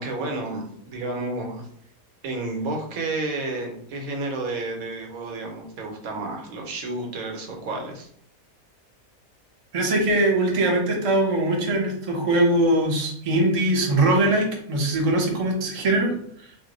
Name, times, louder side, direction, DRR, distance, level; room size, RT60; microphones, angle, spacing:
voice 1, 0.0-1.7 2.2-8.1, right 2 dB, 75° right, 1 dB, 1.1 m, -31 dB
voice 2, 9.7-16.1, right 1 dB, 55° right, 0 dB, 0.3 m, -21 dB
2.6 x 2.0 x 3.7 m, 0.65 s
omnidirectional pair, 1.5 m